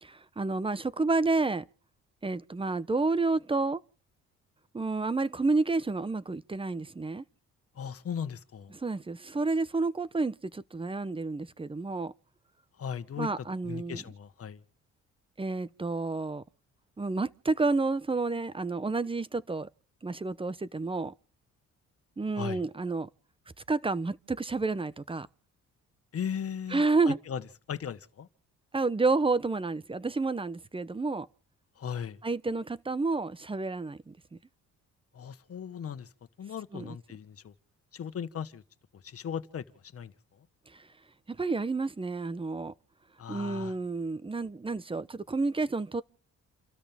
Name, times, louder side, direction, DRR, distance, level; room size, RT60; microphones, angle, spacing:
voice 1, 0.0-1.6 2.2-3.8 4.7-7.2 8.8-12.1 13.2-14.0 15.4-16.4 17.0-19.7 20.0-21.1 22.2-23.1 23.7-25.3 26.7-27.2 28.7-31.3 32.2-34.1 36.7-37.0 41.3-42.7 43.3-46.0, right 3 dB, 15° right, 0.8 m, -30 dB
voice 2, 7.7-8.7 12.8-13.3 13.6-14.6 22.3-22.6 26.1-27.4 27.7-28.3 31.8-32.2 35.1-36.1 36.4-37.5 37.9-38.6 38.9-39.6 39.9-40.4 43.2-43.7, left 8 dB, 50° left, 1.5 m, -37 dB
29.5 x 13.0 x 3.6 m
cardioid pair, 90°, 30 cm